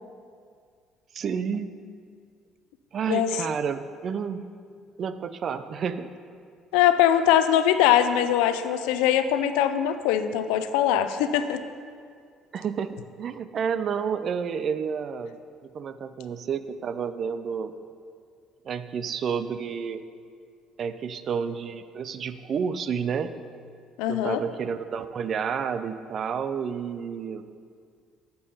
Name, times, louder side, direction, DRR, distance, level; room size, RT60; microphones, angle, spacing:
voice 1, 1.1-1.7 2.9-4.4 5.0-6.1 12.5-17.7 18.6-20.0 20.8-23.3 24.1-27.4, right 6 dB, 50° right, 12 dB, 0.5 m, -30 dB
voice 2, 6.7-11.6 24.0-24.4, left 10 dB, 85° left, 10 dB, 0.5 m, -22 dB
8.5 x 6.9 x 5.4 m, 2.2 s
supercardioid pair, 80°, 0 cm